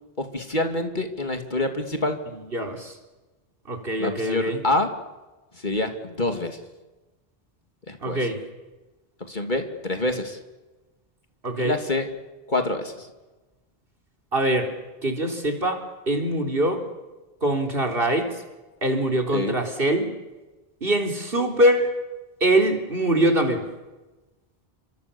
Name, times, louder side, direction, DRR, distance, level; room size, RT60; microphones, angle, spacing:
voice 1, 0.2-2.2 4.0-4.9 5.5-6.6 7.9-8.3 9.2-10.4 11.6-12.1 12.5-13.1 19.3-19.6, left 2 dB, 50° left, 5 dB, 2.8 m, -26 dB
voice 2, 2.5-2.9 3.7-4.6 8.0-8.4 11.4-11.8 14.3-14.7 15.0-15.8 16.1-16.8 17.4-18.3 18.8-20.1 20.8-21.9 22.4-23.6, right 1 dB, 65° right, 3 dB, 4.2 m, -23 dB
30.0 x 25.0 x 7.1 m, 1.1 s
omnidirectional pair, 1.0 m